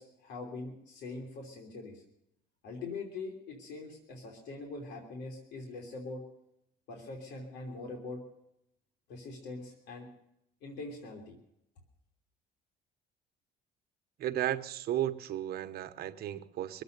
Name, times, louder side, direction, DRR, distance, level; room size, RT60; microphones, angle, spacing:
voice 1, 0.0-2.0 2.6-6.2 6.9-8.2 9.1-10.1 10.6-11.3, left 3 dB, 80° left, 3.2 m, -43 dB
voice 2, 14.2-16.8, right 12 dB, 65° right, 1.0 m, -34 dB
23.0 x 8.3 x 6.7 m
cardioid pair, 110°, 17 cm